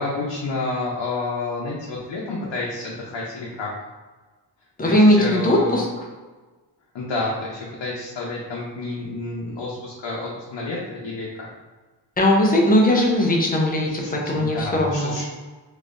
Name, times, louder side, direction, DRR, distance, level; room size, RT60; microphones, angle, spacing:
voice 1, 0.0-3.7 4.8-5.8 6.9-11.5 14.0-15.2, left 2 dB, 85° left, -4 dB, 0.7 m, -29 dB
voice 2, 4.8-5.9 12.2-15.2, left 1 dB, 20° left, -1 dB, 0.6 m, -19 dB
3.9 x 2.9 x 2.5 m, 1.3 s
wide cardioid pair, 160°, 43 cm